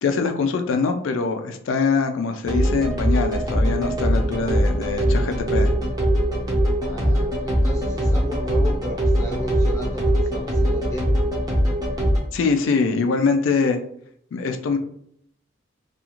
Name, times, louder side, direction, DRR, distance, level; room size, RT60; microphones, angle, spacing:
voice 1, 0.0-5.7 12.3-13.8 14.3-14.8, left 4 dB, 75° left, 6 dB, 0.3 m, -23 dB
sound 1, 2.4-12.2, equal, 20° right, 0.6 m, -21 dB
voice 2, 6.9-11.1, equal, 15° left, -3 dB, 0.7 m, -34 dB
2.4 x 2.4 x 2.9 m, 0.70 s
head